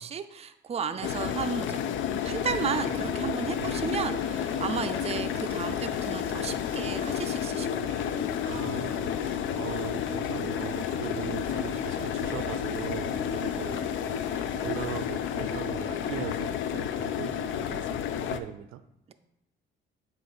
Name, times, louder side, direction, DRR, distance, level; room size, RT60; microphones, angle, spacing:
voice 1, 0.0-8.0, right 6 dB, 30° right, 9 dB, 0.4 m, -34 dB
sound 1, 1.0-18.4, left 9 dB, 75° left, 0.4 m, -31 dB
sound 2, 2.7-16.4, right 2 dB, 10° right, 2.4 m, -43 dB
voice 2, 3.6-3.9 8.4-18.8, right 11 dB, 90° right, 11 dB, 0.4 m, -40 dB
7.6 x 2.5 x 5.5 m, 0.83 s
cardioid pair, 90°, 20 cm